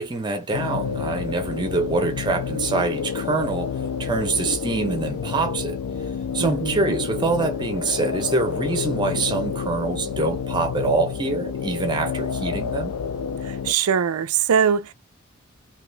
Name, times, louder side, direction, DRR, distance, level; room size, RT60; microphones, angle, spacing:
voice 1, 0.0-3.7 4.0-5.8 6.3-12.9, right 3 dB, 20° right, 0.5 m, -25 dB
sound 1, 0.5-13.7, left 6 dB, 90° left, 0.4 m, -29 dB
voice 2, 6.4-7.0 13.4-14.9, right 7 dB, 85° right, 0.4 m, -22 dB
2.9 x 2.2 x 3.1 m
head